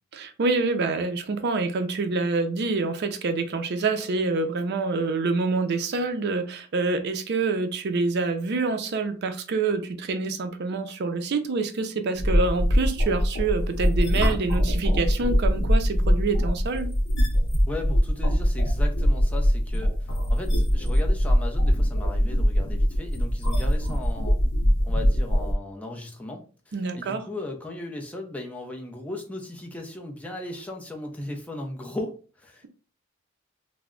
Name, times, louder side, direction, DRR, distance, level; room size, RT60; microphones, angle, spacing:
voice 1, 0.1-16.9 26.7-27.2, right 3 dB, 55° right, 8 dB, 0.4 m, -26 dB
sound 1, 12.2-25.5, equal, 60° left, 0.7 m, -22 dB
voice 2, 17.7-24.4 24.8-32.7, left 2 dB, 5° left, 1 dB, 0.5 m, -37 dB
2.3 x 2.0 x 3.6 m, 0.37 s
head